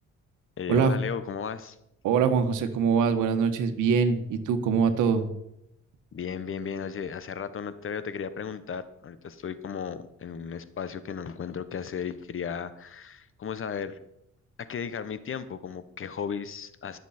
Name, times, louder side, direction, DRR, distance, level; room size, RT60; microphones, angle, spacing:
voice 1, 0.6-1.8 6.1-14.0 14.6-17.0, left 7 dB, 45° left, 13 dB, 1.1 m, -35 dB
voice 2, 2.0-5.3, right 6 dB, 90° right, 7 dB, 1.5 m, -23 dB
20.5 x 7.2 x 4.3 m, 0.79 s
cardioid pair, 90°, 30 cm